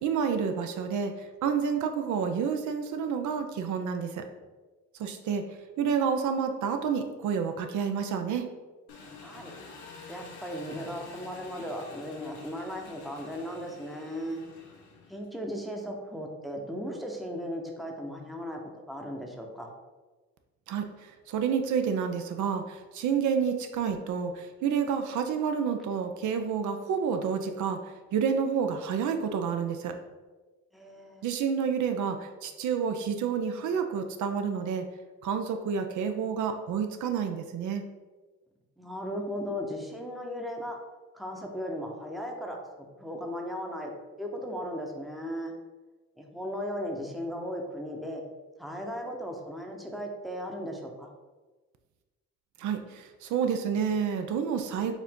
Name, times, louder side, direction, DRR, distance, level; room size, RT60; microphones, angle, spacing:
voice 1, 0.0-4.2 5.0-5.4 5.8-8.5 20.7-30.0 31.2-34.9 35.2-37.8 52.6-54.9, right 6 dB, 75° right, 6 dB, 0.5 m, -29 dB
Engine, 8.9-15.4, left 4 dB, 90° left, 0.9 m, -48 dB
voice 2, 9.2-9.5 10.1-14.4 15.1-18.6 18.9-19.7 30.7-31.2 38.8-40.8 41.1-42.6 43.0-43.9 44.2-45.5 46.2-48.2 48.6-51.1, equal, ahead, 1 dB, 0.7 m, -36 dB
4.8 x 2.6 x 3.6 m, 1.3 s
cardioid pair, 90°, 30 cm